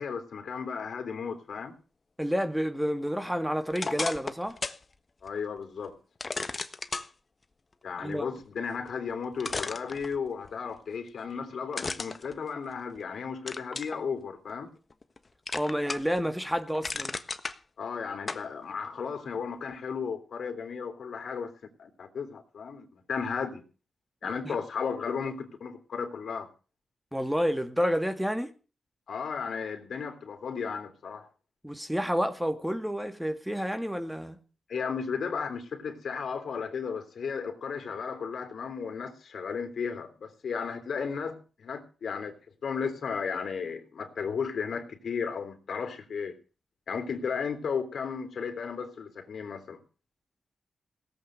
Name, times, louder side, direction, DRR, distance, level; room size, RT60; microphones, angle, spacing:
voice 1, 0.0-1.8 5.2-5.9 7.8-14.7 17.8-21.5 21.8-23.6 24.2-26.5 29.1-31.3 34.7-42.3 42.6-46.4 46.9-49.8, left 6 dB, 70° left, 3.3 m, -34 dB
voice 2, 2.2-4.6 8.0-8.3 15.5-17.1 24.4-24.6 27.1-28.5 31.6-34.4, equal, 5° right, 2.1 m, -29 dB
sound 1, 3.7-4.8 5.3-5.4 6.2-7.1 8.9-9.0 9.4-10.5 11.7-13.0 13.5-14.0 14.5-15.2 15.5-16.2 16.5-17.6 18.3-18.5, left 3 dB, 35° left, 1.4 m, -34 dB
17.5 x 8.4 x 7.8 m
cardioid pair, 80°, 0 cm